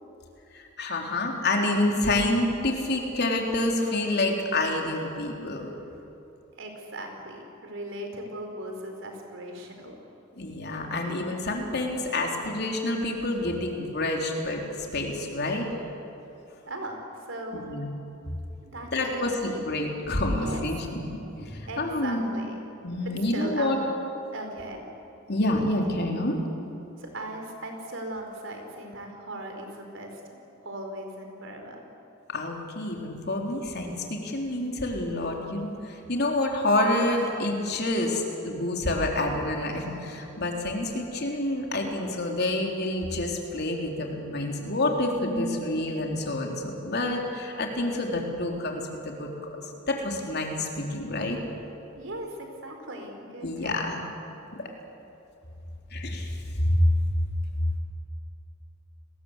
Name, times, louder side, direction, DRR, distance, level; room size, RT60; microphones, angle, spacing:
voice 1, 0.5-5.7 10.4-14.6 14.9-15.7 17.5-17.9 18.9-19.3 19.7-21.0 21.4-22.3 22.8-23.8 25.3-26.4 32.3-49.3 49.9-51.4 53.4-54.0 55.9-56.9, left 1 dB, 55° left, 1 dB, 3.8 m, -28 dB
voice 2, 6.6-9.9 16.7-17.0 17.3-17.7 18.6-19.6 20.3-20.6 21.7-22.6 23.3-23.9 24.3-24.8 27.0-30.2 30.6-31.8 51.9-54.0, right 1 dB, 65° right, 3 dB, 4.7 m, -38 dB
30.0 x 21.0 x 8.3 m, 3.0 s
head